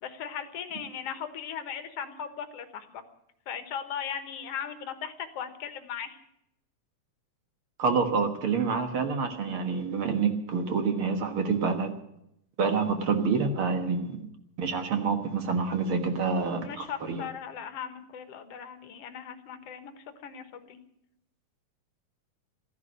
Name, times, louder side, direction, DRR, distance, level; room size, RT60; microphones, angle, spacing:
voice 1, 0.0-3.0 3.5-6.2 16.6-20.8, left 8 dB, 60° left, 9 dB, 2.1 m, -38 dB
voice 2, 7.8-11.9 12.6-14.2 14.6-17.3, right 5 dB, 50° right, 6 dB, 2.0 m, -27 dB
14.5 x 11.0 x 9.2 m, 0.77 s
omnidirectional pair, 3.4 m